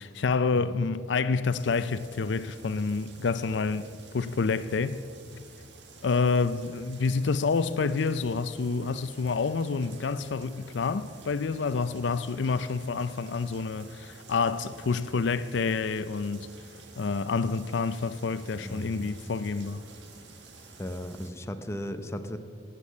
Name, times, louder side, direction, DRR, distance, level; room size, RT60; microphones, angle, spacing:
voice 1, 0.0-5.0 6.0-16.5 17.0-19.8, left 4 dB, 75° left, 0.5 m, -28 dB
sound 1, 1.6-21.3, right 4 dB, 75° right, 1.6 m, -51 dB
voice 2, 18.6-19.2 20.8-22.4, left 1 dB, 15° left, 0.7 m, -36 dB
15.5 x 8.4 x 8.4 m
head